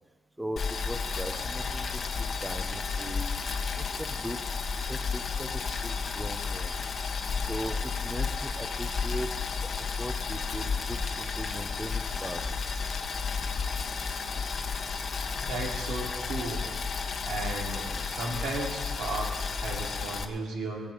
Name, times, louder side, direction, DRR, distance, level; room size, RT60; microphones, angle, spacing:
voice 1, 0.4-3.3 3.8-4.4 4.7-6.8 7.5-9.3 9.6-12.4, equal, 5° right, 7 dB, 1.2 m, -39 dB
Boiling, 0.6-20.2, left 5 dB, 45° left, 1.3 m, -32 dB
voice 2, 15.5-16.6 17.2-20.9, right 2 dB, 70° right, -1 dB, 3.3 m, -35 dB
18.5 x 7.2 x 8.7 m, 1.3 s
cardioid pair, 90°, 0 cm